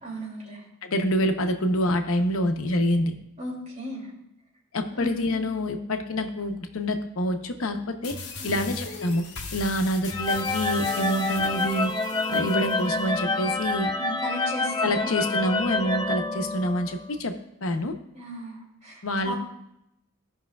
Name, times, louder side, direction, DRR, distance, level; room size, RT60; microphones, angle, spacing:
voice 1, 0.0-0.6 3.4-4.1 4.9-5.2 8.4-8.6 14.0-15.2 18.1-19.3, right 1 dB, 30° right, -4 dB, 2.5 m, -36 dB
voice 2, 0.8-3.1 4.7-8.1 8.4-9.2 9.5-11.9 12.3-13.9 14.8-17.3 17.6-17.9 19.0-19.3, equal, 75° left, 6 dB, 0.8 m, -26 dB
sound 1, 8.0-13.0, left 3 dB, 50° left, 1.3 m, -38 dB
sound 2, 10.1-17.1, left 2 dB, 20° left, 0.4 m, -28 dB
16.0 x 5.5 x 2.3 m, 0.79 s
head